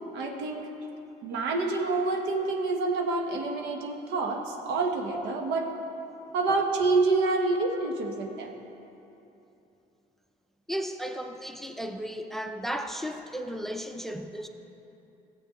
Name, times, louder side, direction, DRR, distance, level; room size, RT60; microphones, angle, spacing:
voice 1, 0.1-0.7 1.2-5.7 6.3-8.5, right 3 dB, 85° right, 2 dB, 1.2 m, -27 dB
voice 2, 10.7-14.5, equal, ahead, 5 dB, 0.5 m, -35 dB
14.5 x 8.2 x 3.7 m, 2.9 s
cardioid pair, 110°, 17 cm